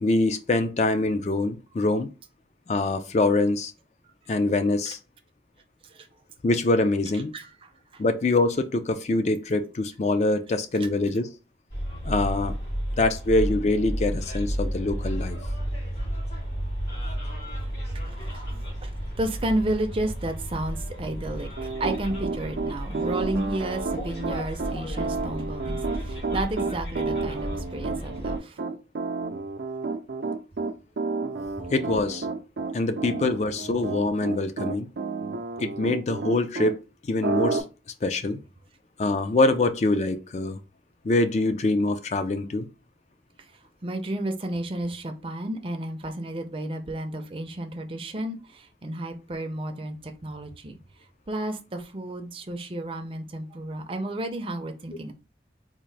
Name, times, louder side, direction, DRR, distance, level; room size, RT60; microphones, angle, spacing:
voice 1, 0.0-2.1 2.7-3.7 4.3-5.0 6.4-7.3 8.0-11.3 12.0-12.5 13.0-15.4 31.7-32.3 32.7-34.9 35.6-37.6 38.0-38.4 39.0-40.6 41.0-42.7, left 2 dB, 40° left, 0.4 m, -24 dB
voice 2, 7.3-8.0 17.9-28.6 43.8-50.8 51.3-55.1, right 1 dB, 30° right, 0.5 m, -32 dB
Bus, 11.7-28.4, equal, 65° left, 2.1 m, -33 dB
Piano, 21.6-36.7 37.2-37.6, right 4 dB, 80° right, 0.5 m, -30 dB
3.6 x 2.5 x 3.2 m
head